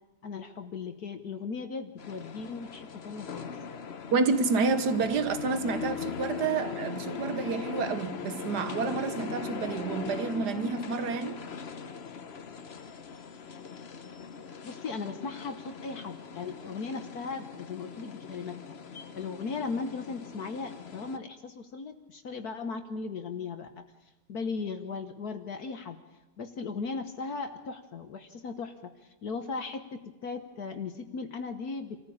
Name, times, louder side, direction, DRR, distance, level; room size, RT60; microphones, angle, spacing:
voice 1, 0.2-3.5 14.6-18.8 19.1-23.8 24.3-26.0 26.4-28.9 29.2-32.0, left 4 dB, 60° left, 1.6 m, -37 dB
Trolebús en la Noche, 2.0-21.2, left 6 dB, 45° left, 1.0 m, -40 dB
voice 2, 4.1-11.4, right 4 dB, 65° right, 1.8 m, -29 dB
26.0 x 14.5 x 8.6 m
omnidirectional pair, 1.9 m